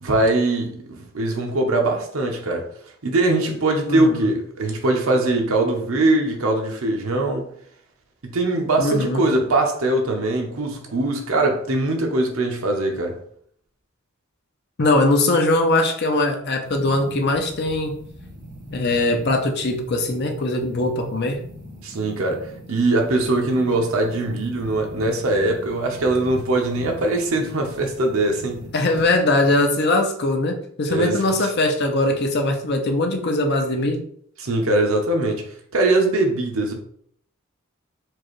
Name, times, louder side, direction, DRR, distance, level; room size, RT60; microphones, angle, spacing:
voice 1, 0.0-2.7 3.0-7.5 8.2-13.2 21.8-28.7 30.9-31.2 34.4-35.4 35.7-36.7, right 2 dB, 75° right, 0.8 m, -21 dB
voice 2, 3.9-4.3 8.8-9.2 14.8-18.0 18.7-21.4 28.7-34.0, left 2 dB, 50° left, 0.7 m, -21 dB
sound 1, 16.6-29.1, equal, 55° right, 1.3 m, -41 dB
4.6 x 2.5 x 3.1 m
head